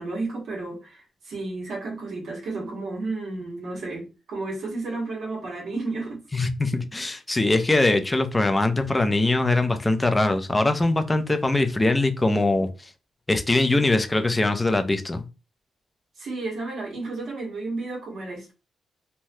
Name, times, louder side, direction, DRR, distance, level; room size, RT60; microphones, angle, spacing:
voice 1, 0.0-6.2 16.2-18.5, right 3 dB, 75° right, 1.4 m, -32 dB
voice 2, 6.3-12.7 13.3-15.2, left 2 dB, 20° left, 0.5 m, -22 dB
3.2 x 2.2 x 2.7 m
cardioid pair, 80°, 0 cm